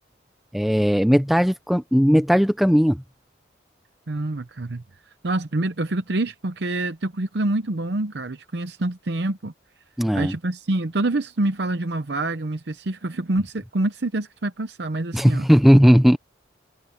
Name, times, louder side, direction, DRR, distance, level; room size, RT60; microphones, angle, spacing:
voice 1, 0.5-3.0 10.0-10.3 15.1-16.2, equal, ahead, 0.4 m, -17 dB
voice 2, 4.1-4.8 5.2-9.5 10.1-15.5, right 2 dB, 60° right, 0.8 m, -26 dB
head